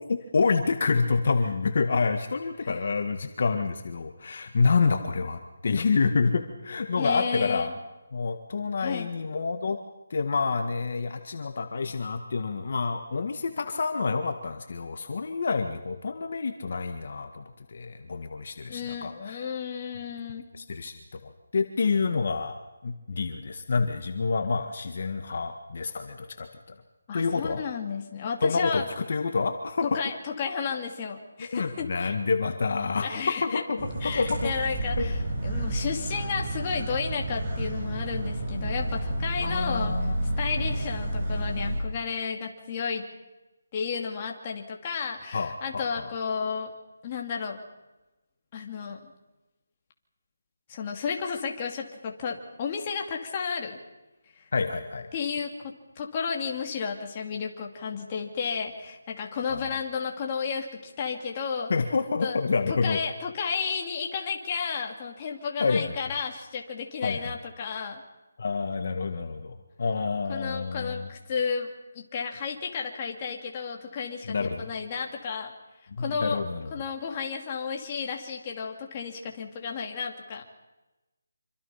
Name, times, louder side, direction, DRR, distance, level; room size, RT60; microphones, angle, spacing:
voice 1, 0.1-7.7 8.1-9.8 10.1-19.4 20.5-21.2 21.5-22.6 22.8-26.5 27.1-27.6 28.4-29.9 31.5-33.9 34.2-34.5 35.0-35.1 39.4-40.1 45.3-46.1 54.5-55.1 59.5-59.8 61.7-63.0 65.6-66.0 67.0-67.3 68.4-71.1 74.3-74.7 75.9-76.7, left 4 dB, 50° left, 6 dB, 1.7 m, -28 dB
voice 2, 7.0-7.7 8.8-9.1 18.7-20.5 27.1-28.9 29.8-32.1 33.0-33.6 34.0-39.9 40.4-43.1 43.7-46.7 47.0-47.6 48.5-49.1 50.7-53.8 54.3-54.5 55.1-55.5 56.0-61.7 62.2-62.4 62.7-68.0 70.3-71.7 71.9-75.5 76.0-76.4 76.7-80.4, left 6 dB, 25° left, 1 dB, 2.8 m, -32 dB
sound 1, 33.8-41.8, right 1 dB, 30° right, 6.6 m, -30 dB
26.5 x 25.0 x 5.8 m, 1.0 s
figure-of-eight pair, 170°, 0 cm